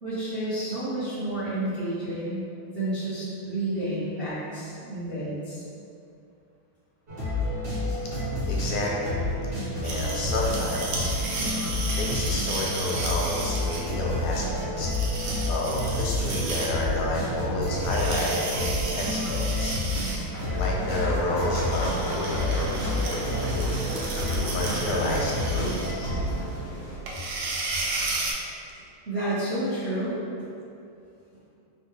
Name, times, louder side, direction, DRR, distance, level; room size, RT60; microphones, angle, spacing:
voice 1, 0.0-2.4 2.7-5.6 29.1-30.5, right 1 dB, 90° right, -12 dB, 0.5 m, -30 dB
sound 1, 7.1-26.5, left 1 dB, 55° right, 1.5 m, -30 dB
voice 2, 7.8-8.2 8.5-9.2 9.8-11.2 12.0-14.9 15.5-20.1 20.5-23.8 24.5-26.2, left 2 dB, 85° left, -2 dB, 1.5 m, -30 dB
sound 2, 9.8-28.3, right 3 dB, 75° right, 1.2 m, -34 dB
sound 3, 20.3-27.0, left 1 dB, 50° left, 0.4 m, -37 dB
4.0 x 2.2 x 3.1 m, 2.5 s
omnidirectional pair, 2.3 m